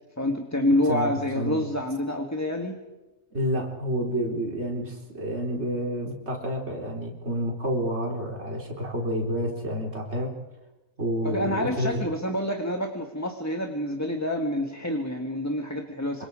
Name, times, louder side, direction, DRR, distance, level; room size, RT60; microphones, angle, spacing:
voice 1, 0.2-2.8 11.3-16.2, left 1 dB, 10° left, 3 dB, 1.6 m, -27 dB
voice 2, 0.8-1.6 3.3-10.4 11.0-12.0 16.2-16.3, equal, 50° right, -1 dB, 4.4 m, -29 dB
26.5 x 25.5 x 5.0 m, 1.1 s
omnidirectional pair, 1.5 m